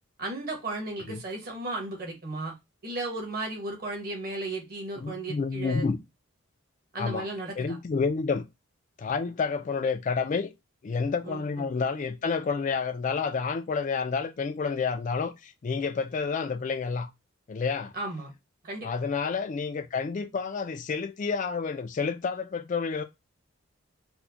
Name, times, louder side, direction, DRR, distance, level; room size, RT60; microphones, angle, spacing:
voice 1, 0.2-2.5 2.8-5.9 6.9-7.8 11.2-11.7 17.9-18.3 18.6-18.9, right 2 dB, 45° right, 1.2 m, -35 dB
voice 2, 5.0-6.0 7.0-7.3 7.6-8.4 9.0-10.5 10.8-17.1 17.5-17.9 18.8-23.0, left 5 dB, 40° left, 0.3 m, -29 dB
4.2 x 2.1 x 2.7 m
head